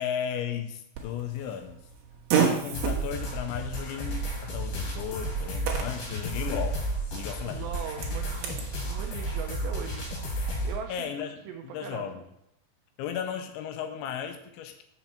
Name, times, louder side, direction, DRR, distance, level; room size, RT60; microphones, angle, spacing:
voice 1, 0.0-1.8 2.3-6.8 7.1-7.7 10.9-12.2 13.0-14.8, left 8 dB, 80° left, 7 dB, 2.9 m, -35 dB
Fart, 0.9-8.7, right 8 dB, 65° right, 2.4 m, -33 dB
sound 1, 2.7-10.7, right 1 dB, 60° left, 3.4 m, -32 dB
voice 2, 7.5-11.1 11.5-12.2, right 7 dB, 85° right, 4 dB, 2.4 m, -40 dB
7.4 x 7.0 x 4.3 m, 0.79 s
omnidirectional pair, 5.6 m